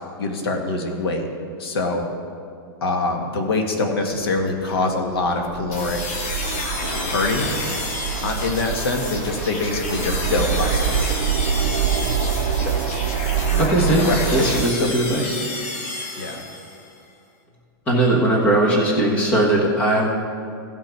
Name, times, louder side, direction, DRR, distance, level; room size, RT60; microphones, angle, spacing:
voice 1, 0.2-1.3 1.6-2.1 2.8-6.0 7.1-7.5 8.2-11.1 13.5-14.9 16.2-16.5, left 3 dB, 90° left, 3 dB, 1.7 m, -24 dB
sound 1, 4.2-14.7, right 8 dB, 55° right, 0.6 m, -26 dB
sound 2, 5.7-16.9, left 2 dB, 35° left, 1.3 m, -30 dB
voice 2, 13.6-15.4 17.9-20.1, right 1 dB, 10° left, -1 dB, 1.1 m, -19 dB
16.5 x 5.8 x 4.6 m, 2.3 s
supercardioid pair, 180°, 12 cm